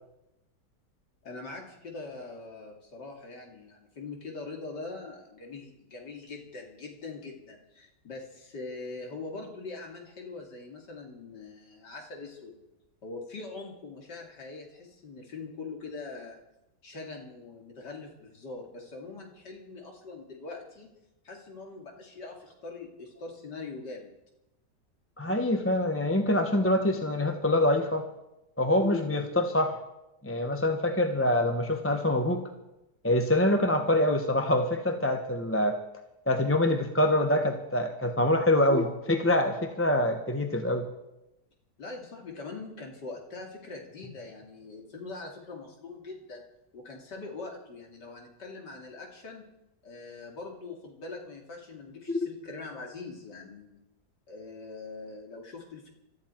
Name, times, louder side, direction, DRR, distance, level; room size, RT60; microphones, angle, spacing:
voice 1, 1.2-12.6 13.0-16.4 16.8-20.9 21.2-24.1 41.8-46.4 46.7-49.5 49.8-53.8 54.3-55.9, left 3 dB, 85° left, 1 dB, 3.3 m, -42 dB
voice 2, 25.2-28.1 28.6-29.8 30.2-32.4 33.0-35.8 36.3-40.8 52.1-52.3, left 1 dB, 10° left, 5 dB, 0.8 m, -25 dB
21.0 x 13.5 x 4.5 m, 0.92 s
omnidirectional pair, 1.8 m